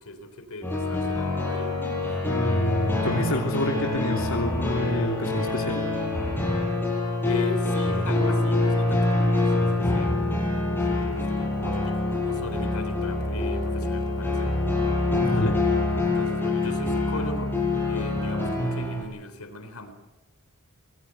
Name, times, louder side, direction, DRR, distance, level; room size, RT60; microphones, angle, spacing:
voice 1, 0.0-1.7 7.2-10.2 10.8-14.5 16.0-17.5 17.9-19.9, left 2 dB, 80° left, 7 dB, 3.7 m, -38 dB
sound 1, 0.6-19.0, left 2 dB, 10° left, 7.3 m, -25 dB
voice 2, 2.2-5.8 15.1-15.6, left 1 dB, 60° left, 0 dB, 3.2 m, -28 dB
26.0 x 20.0 x 7.9 m, 1.1 s
head